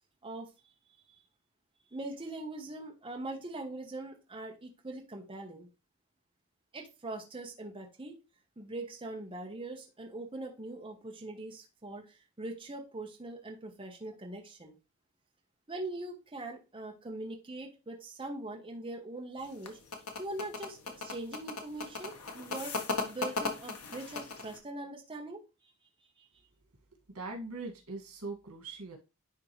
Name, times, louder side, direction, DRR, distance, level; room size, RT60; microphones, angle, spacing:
voice 1, 1.9-5.7 6.7-8.2 8.6-14.7 15.7-19.8 20.2-25.4 26.2-26.3, right 2 dB, 25° right, 1 dB, 1.1 m, -42 dB
sound 1, 19.4-24.6, left 3 dB, 80° left, 1.3 m, -37 dB
voice 2, 27.1-29.0, right 3 dB, 90° right, 2 dB, 2.0 m, -41 dB
10.5 x 3.7 x 3.2 m, 0.28 s
head